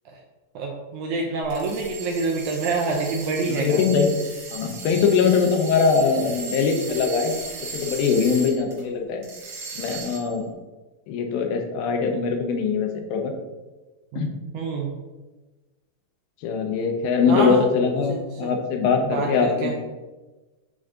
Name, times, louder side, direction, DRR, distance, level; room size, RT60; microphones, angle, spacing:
voice 1, 0.6-3.8 14.1-14.9 17.3-17.6 18.1-18.5 19.0-19.7, right 3 dB, 80° right, 0 dB, 1.8 m, -27 dB
sound 1, 1.4-8.8 9.2-10.4, right 4 dB, 55° right, 2.9 m, -37 dB
voice 2, 3.5-4.2 4.5-7.3 7.7-9.2 9.8-10.5 11.1-13.3 14.2-14.3 16.4-19.7, left 5 dB, 85° left, 3 dB, 2.6 m, -22 dB
7.7 x 3.7 x 3.7 m, 1.2 s
omnidirectional pair, 4.1 m